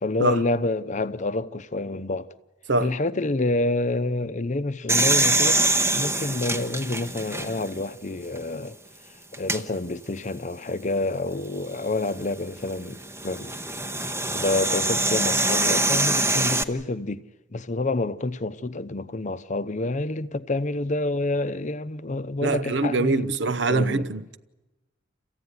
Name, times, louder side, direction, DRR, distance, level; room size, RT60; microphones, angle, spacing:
voice 1, 0.0-2.3 2.8-5.6 5.9-8.8 9.3-13.6 14.3-24.1, left 2 dB, 40° left, 0.7 m, -28 dB
sound 1, 4.9-7.8 8.4-8.5 9.3-9.6 11.7-16.6, right 2 dB, 15° right, 0.9 m, -24 dB
voice 2, 22.4-24.4, right 3 dB, 75° right, 0.8 m, -24 dB
28.5 x 15.0 x 9.6 m
head